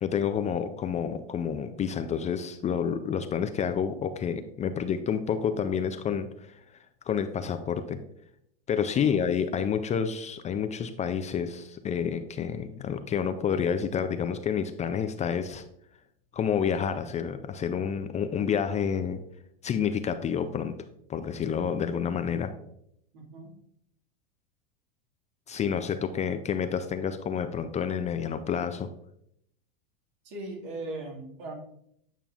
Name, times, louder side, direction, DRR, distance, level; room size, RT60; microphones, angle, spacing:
voice 1, 0.0-6.6 7.1-8.0 8.7-15.6 16.3-19.2 19.6-20.7 21.1-22.5 25.5-28.9, left 7 dB, 25° left, 9 dB, 0.4 m, -29 dB
voice 2, 23.1-23.5 30.2-31.5, right 2 dB, 65° right, 0 dB, 2.1 m, -39 dB
9.0 x 5.6 x 2.4 m, 0.73 s
hypercardioid pair, 100°, 30 cm